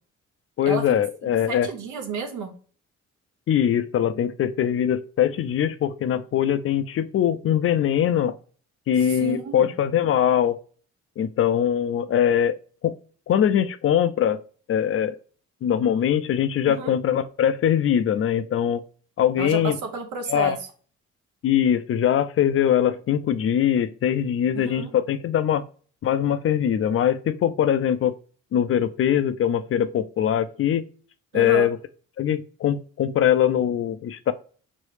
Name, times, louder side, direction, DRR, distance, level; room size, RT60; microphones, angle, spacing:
voice 1, 0.6-1.7 3.5-8.3 8.9-10.6 11.2-12.6 12.8-12.9 13.3-14.4 14.7-15.2 15.6-18.8 19.2-19.8 20.3-20.6 21.4-25.6 26.0-28.1 28.5-30.8 31.3-31.8 32.2-34.3, left 9 dB, 45° left, 13 dB, 0.4 m, -22 dB
voice 2, 1.5-2.5 9.0-9.7 16.7-16.9 19.4-20.6 24.5-24.9 31.3-31.7, right 5 dB, 85° right, 5 dB, 1.0 m, -31 dB
5.2 x 3.2 x 3.2 m, 0.43 s
cardioid pair, 90°, 30 cm